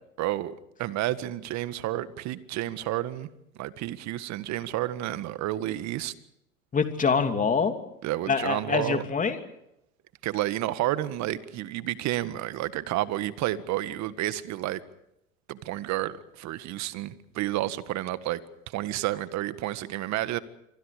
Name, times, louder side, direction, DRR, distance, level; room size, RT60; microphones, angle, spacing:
voice 1, 0.2-3.3 3.6-6.1 8.0-9.0 10.2-14.8 15.5-18.4 18.7-20.4, right 15 dB, 45° right, 14 dB, 1.7 m, -30 dB
voice 2, 6.7-7.8 8.3-9.4, left 5 dB, 20° left, 7 dB, 2.9 m, -25 dB
27.5 x 24.5 x 5.1 m, 0.80 s
hypercardioid pair, 90°, 40 cm